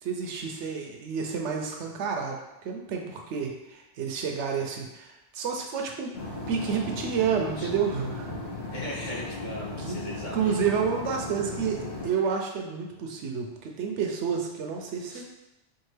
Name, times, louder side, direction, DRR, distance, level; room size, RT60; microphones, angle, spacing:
voice 1, 0.0-6.2 6.5-8.3 9.8-10.0 10.3-15.2, right 6 dB, 70° right, 2 dB, 0.8 m, -30 dB
sound 1, 6.1-12.1, left 2 dB, 65° left, 1.2 m, -36 dB
voice 2, 8.7-10.5 15.1-15.2, left 1 dB, 40° left, -5 dB, 1.0 m, -38 dB
4.5 x 2.4 x 3.2 m, 0.98 s
omnidirectional pair, 1.3 m